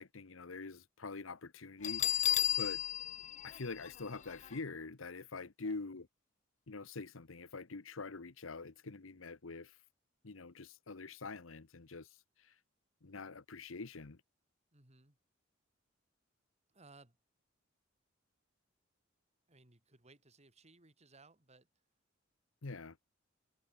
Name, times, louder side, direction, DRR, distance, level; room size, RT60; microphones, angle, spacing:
voice 1, 0.0-2.8 3.4-6.1 6.7-9.8 10.2-12.1 12.4-12.5 13.0-14.2 22.6-23.0, left 3 dB, 85° left, 1.1 m, -45 dB
Bell, 1.8-4.5, left 12 dB, 40° left, 0.4 m, -34 dB
voice 2, 14.7-15.2 16.7-17.2 19.5-21.7, right 3 dB, 35° right, 3.2 m, -62 dB
head